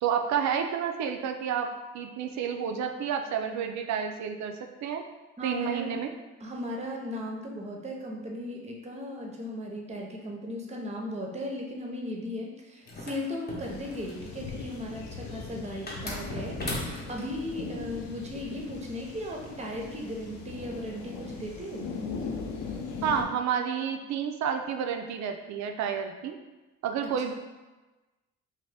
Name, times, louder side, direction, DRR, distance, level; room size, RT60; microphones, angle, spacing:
voice 1, 0.0-5.1 5.4-6.1 18.5-18.6 23.0-26.4 26.8-27.3, right 7 dB, 65° right, 5 dB, 0.4 m, -30 dB
voice 2, 5.4-6.0 6.4-21.9 27.3-27.4, left 1 dB, 20° right, 0 dB, 0.6 m, -37 dB
sound 1, 12.9-14.3 15.9-17.3, left 1 dB, 30° left, 0.8 m, -37 dB
sound 2, 13.7-23.2, left 4 dB, 70° left, 0.6 m, -39 dB
2.7 x 2.6 x 3.3 m, 1.2 s
cardioid pair, 90°, 30 cm